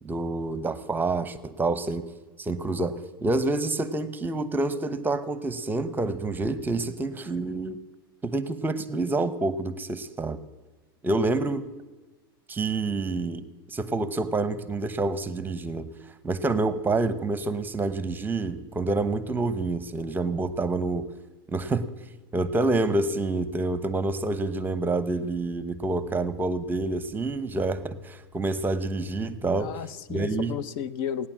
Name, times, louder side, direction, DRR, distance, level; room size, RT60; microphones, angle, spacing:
voice 1, 0.0-2.1 2.4-7.8 8.2-10.4 11.0-11.7 12.5-15.9 16.2-21.1 21.5-21.9 22.3-29.7 30.1-30.5, right 2 dB, 15° right, 14 dB, 0.9 m, -28 dB
voice 2, 29.5-31.3, left 8 dB, 60° left, 16 dB, 0.7 m, -33 dB
17.0 x 9.7 x 7.4 m, 1.2 s
hypercardioid pair, 110°, 13 cm